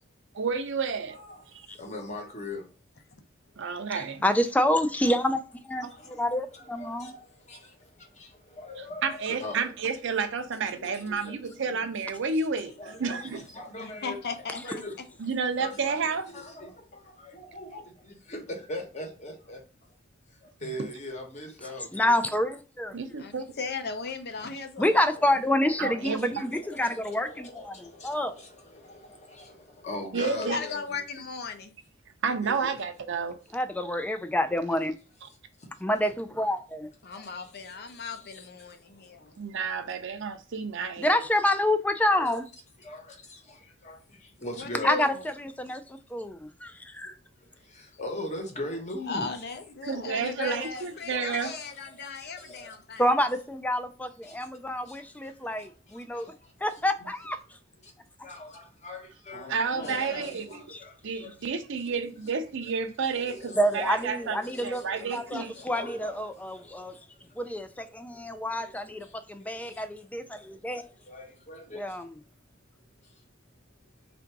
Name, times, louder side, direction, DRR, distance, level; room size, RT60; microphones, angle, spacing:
voice 1, 0.3-1.2 1.5-1.7 3.6-4.2 8.8-13.4 15.2-16.3 20.6-20.7 22.9-23.4 25.8-26.3 30.1-30.6 32.2-33.4 39.4-41.2 49.9-51.5 59.5-60.6 61.0-65.6, right 5 dB, 60° right, 0.6 m, -31 dB
voice 2, 1.1-1.4 1.8-2.6 3.6-3.9 5.9-9.7 10.7-11.8 12.8-14.2 14.6-15.2 15.6-19.6 20.4-22.1 26.1-31.0 32.4-32.7 35.6-35.7 37.1-39.3 42.2-42.3 42.8-44.9 47.6-49.3 50.4-50.8 51.1-53.0 54.2-54.4 54.9-56.5 57.8-57.9 58.2-61.9 63.1-63.8 64.3-67.0 68.3-68.4 69.0-69.2 69.5-69.9 71.0-72.0 73.0-73.2, left 1 dB, 35° left, 1.0 m, -42 dB
voice 3, 3.9-7.1 21.9-23.0 24.8-28.3 33.5-34.9 35.8-36.9 41.0-42.5 44.8-47.2 51.3-51.4 53.0-56.3 56.6-57.4 60.7-60.8 63.6-67.0 67.4-70.8 71.7-72.2, left 1 dB, 5° left, 0.3 m, -28 dB
voice 4, 13.8-14.7 23.2-25.1 30.4-31.7 37.0-39.3 44.5-45.3 49.1-53.0 59.7-60.3, left 4 dB, 50° left, 0.6 m, -37 dB
3.5 x 2.6 x 4.5 m
head